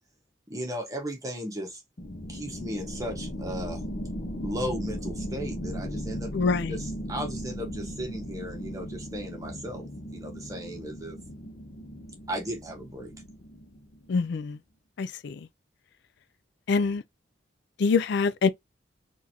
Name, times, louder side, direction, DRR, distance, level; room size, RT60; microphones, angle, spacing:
voice 1, 0.5-1.8 2.3-3.8 4.4-6.4 6.7-11.2 12.3-13.1, equal, 20° right, 1.1 m, -36 dB
sound 1, 2.0-14.2, equal, 45° left, 0.8 m, -37 dB
voice 2, 6.3-6.8 14.1-14.6 15.0-15.5 16.7-17.0 17.8-18.5, left 4 dB, 60° left, 0.4 m, -25 dB
3.8 x 2.6 x 2.9 m
head